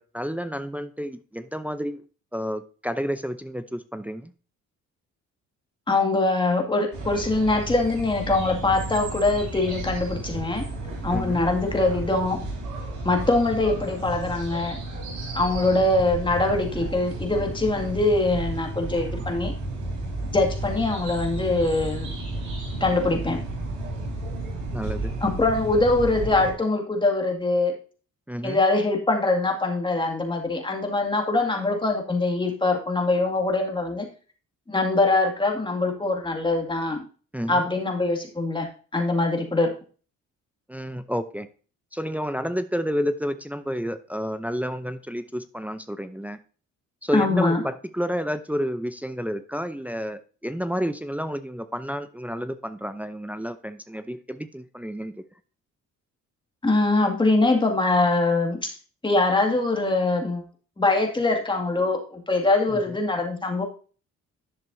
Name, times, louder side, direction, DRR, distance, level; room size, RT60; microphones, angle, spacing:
voice 1, 0.0-2.0 2.3-4.3 11.1-11.4 24.7-25.1 28.3-28.6 37.3-37.7 40.7-41.5 41.9-46.4 47.0-55.2 62.7-62.8, equal, 5° right, 10 dB, 0.6 m, -30 dB
voice 2, 5.9-10.7 11.0-12.5 13.0-14.8 15.3-19.5 20.3-22.1 22.8-23.4 25.2-27.7 28.4-34.1 34.7-37.0 37.5-39.7 47.1-47.6 56.6-58.7 59.0-60.4 60.8-63.6, left 2 dB, 15° left, 2 dB, 2.1 m, -23 dB
sound 1, 6.9-26.5, right 2 dB, 80° right, 4.1 m, -32 dB
11.0 x 6.6 x 2.7 m, 0.38 s
cardioid pair, 90°, 30 cm